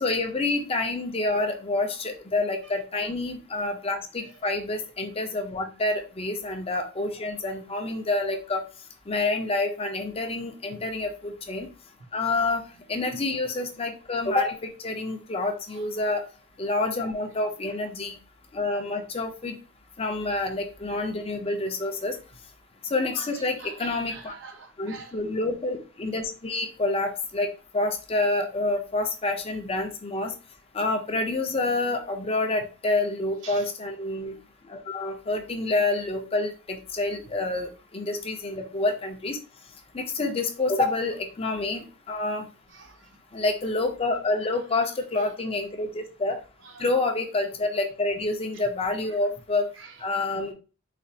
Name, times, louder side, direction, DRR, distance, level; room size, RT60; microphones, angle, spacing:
voice 1, 0.0-8.6 9.1-11.7 12.1-12.6 12.9-16.2 16.6-18.2 18.5-19.6 20.0-22.2 22.9-24.3 24.8-27.5 27.7-30.3 30.7-34.3 34.7-39.4 39.9-41.8 42.1-42.5 43.3-46.4 46.8-49.6 50.0-50.5, left 2 dB, 30° left, 5 dB, 0.5 m, -28 dB
voice 2, 23.0-25.3 33.4-33.7 42.7-43.2 44.4-44.8 45.2-45.3 46.6-46.9 48.5-48.7 49.1-49.2 49.7-50.0, right 4 dB, 65° right, 5 dB, 0.7 m, -46 dB
4.1 x 2.3 x 2.7 m, 0.33 s
head